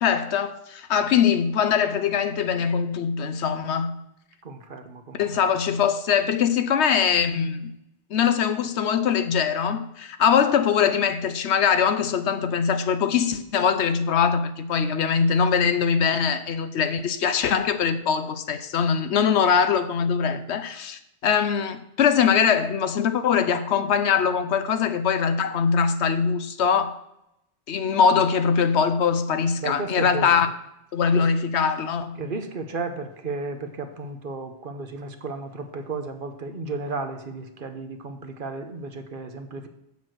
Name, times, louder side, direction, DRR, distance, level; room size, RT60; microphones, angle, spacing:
voice 1, 0.0-4.0 5.2-7.7 8.1-27.0 27.7-30.5 30.9-32.2, left 7 dB, 70° left, 0.9 m, -22 dB
voice 2, 4.4-5.5 19.1-19.2 20.3-20.4 29.6-30.4 31.2-31.3 32.2-39.7, right 3 dB, 50° right, 0.9 m, -34 dB
7.2 x 6.0 x 7.7 m
omnidirectional pair, 1.2 m